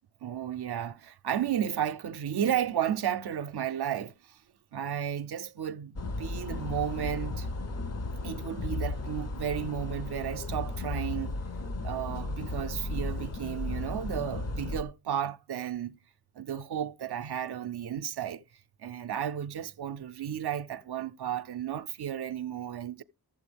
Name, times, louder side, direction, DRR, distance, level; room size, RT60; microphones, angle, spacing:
voice 1, 0.2-4.4 4.7-7.5 8.2-11.4 11.8-16.0 16.4-18.4 18.8-23.0, right 9 dB, 80° right, 0.5 m, -33 dB
sound 1, 6.0-14.8, left 2 dB, 40° left, 0.8 m, -35 dB
12.5 x 7.4 x 3.3 m
wide cardioid pair, 60°, 39 cm